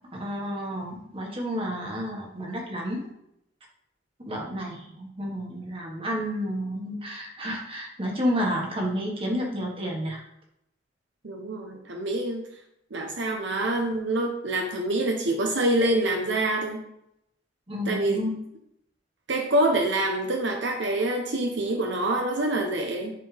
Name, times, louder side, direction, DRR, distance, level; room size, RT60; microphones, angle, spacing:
voice 1, 0.1-3.1 4.2-10.2 17.7-18.4, equal, 30° right, -1 dB, 1.7 m, -30 dB
voice 2, 11.2-12.4 12.9-16.8 17.9-18.2 19.3-23.1, right 1 dB, 70° right, 2 dB, 1.0 m, -26 dB
11.0 x 4.5 x 3.5 m, 0.77 s
head